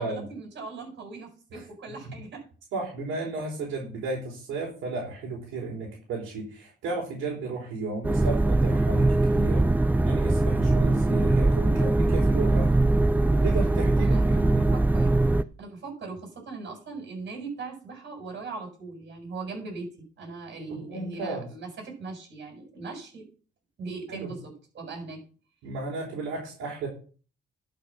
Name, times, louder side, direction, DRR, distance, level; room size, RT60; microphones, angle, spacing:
voice 1, 0.0-2.4 14.0-15.1 15.6-23.2 23.8-25.2, right 4 dB, 60° right, 2 dB, 7.4 m, -39 dB
voice 2, 2.7-9.6 10.0-12.7 13.4-14.7 20.7-21.5 24.1-24.3 25.6-26.9, right 3 dB, 85° right, -3 dB, 4.4 m, -34 dB
sound 1, 8.0-15.4, right 2 dB, 10° right, 0.4 m, -22 dB
11.5 x 6.6 x 6.4 m, 0.40 s
cardioid pair, 90°, 20 cm